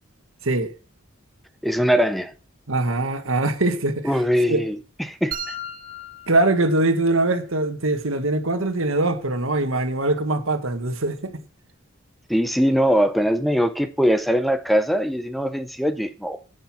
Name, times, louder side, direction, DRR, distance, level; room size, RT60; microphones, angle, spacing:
voice 1, 1.6-2.3 4.0-5.5 12.3-16.4, equal, ahead, 0.6 m, -21 dB
voice 2, 2.7-4.2 4.5-4.6 6.3-11.3, right 2 dB, 75° right, 1.5 m, -22 dB
sound 1, 5.3-7.3, right 1 dB, 45° right, 1.7 m, -36 dB
10.5 x 8.1 x 5.9 m
head